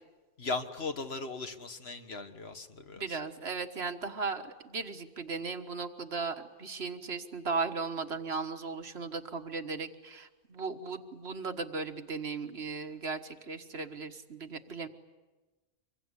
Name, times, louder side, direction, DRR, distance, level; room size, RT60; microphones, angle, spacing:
voice 1, 0.4-3.2, left 3 dB, 65° left, 8 dB, 1.8 m, -38 dB
voice 2, 2.9-14.9, right 4 dB, 65° right, 8 dB, 1.7 m, -37 dB
25.5 x 23.0 x 9.9 m, 1.2 s
omnidirectional pair, 1.2 m